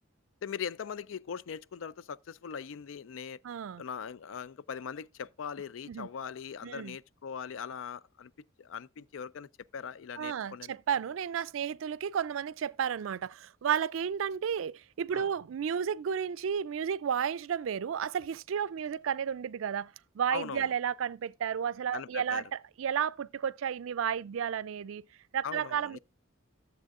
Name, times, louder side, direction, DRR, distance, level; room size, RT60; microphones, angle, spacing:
voice 1, 0.4-3.4 3.8-8.3 8.6-10.7 15.1-15.3 20.3-20.7 21.9-22.4 25.4-26.0, left 7 dB, 75° left, 0.4 m, -40 dB
voice 2, 3.4-3.8 5.9-6.1 6.6-7.0 10.2-25.0 25.3-26.0, right 8 dB, 80° right, 0.4 m, -32 dB
14.5 x 7.2 x 2.5 m
head